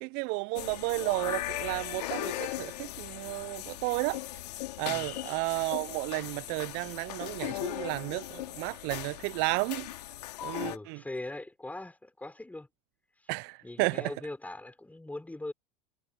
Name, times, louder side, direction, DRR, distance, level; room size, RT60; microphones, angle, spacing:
voice 1, 0.0-4.2 4.8-9.9 10.4-11.0 13.3-14.1, right 29 dB, 55° right, 0.5 m, -32 dB
sound 1, 0.5-10.8, left 16 dB, 75° left, 2.4 m, -38 dB
voice 2, 4.8-5.1 10.6-12.7 13.6-15.5, left 2 dB, 5° left, 4.2 m, -41 dB
hypercardioid pair, 90°, 21 cm